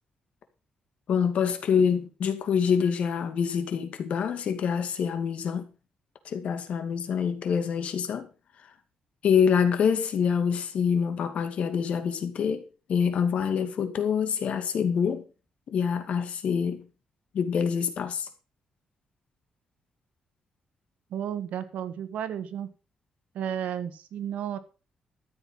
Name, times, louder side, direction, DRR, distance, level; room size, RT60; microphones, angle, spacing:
voice 1, 1.1-5.7 6.2-8.3 9.2-12.6 12.9-15.2 15.7-16.8 17.3-18.3, left 7 dB, 65° left, 2.2 m, -26 dB
voice 2, 21.1-22.7 23.3-24.6, right 9 dB, 90° right, 1.5 m, -33 dB
13.5 x 7.9 x 5.7 m
cardioid pair, 140°, 2 cm